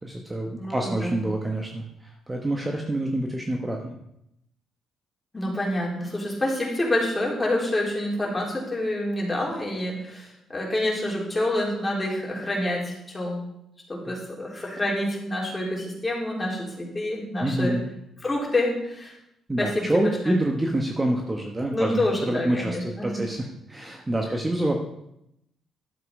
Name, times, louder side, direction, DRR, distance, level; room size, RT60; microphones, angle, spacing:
voice 1, 0.0-4.0 17.4-17.9 19.5-24.8, right 1 dB, 15° right, 2 dB, 1.3 m, -27 dB
voice 2, 0.6-1.2 5.3-13.4 13.9-17.8 18.2-19.2 19.6-20.4 21.7-23.2, left 1 dB, 20° left, -3 dB, 4.1 m, -27 dB
11.5 x 7.6 x 4.9 m, 0.81 s
cardioid pair, 90°, 0 cm